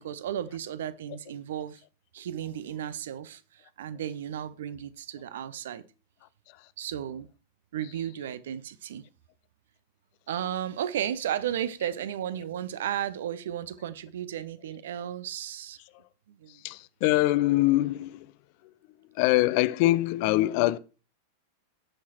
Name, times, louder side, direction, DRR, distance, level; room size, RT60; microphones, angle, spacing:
voice 1, 0.0-1.8 2.1-5.8 6.8-7.3 7.7-9.1 10.3-15.8 16.3-16.6, right 10 dB, 60° right, 0.6 m, -34 dB
voice 2, 16.6-18.3 19.2-20.8, left 17 dB, 45° left, 0.5 m, -23 dB
16.5 x 5.6 x 3.0 m
figure-of-eight pair, 90°, 0 cm